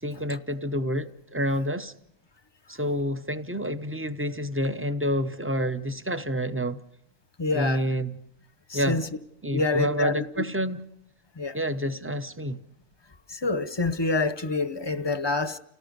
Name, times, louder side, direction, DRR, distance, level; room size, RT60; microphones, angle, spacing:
voice 1, 0.0-1.9 2.7-6.8 7.5-8.2 8.7-9.0 9.4-10.8 11.5-12.6, equal, 15° right, 0.5 m, -28 dB
voice 2, 7.4-7.8 8.7-9.1 9.5-10.2 11.4-11.5 13.4-15.6, left 3 dB, 25° left, 0.7 m, -26 dB
29.5 x 18.0 x 5.3 m
omnidirectional pair, 1.4 m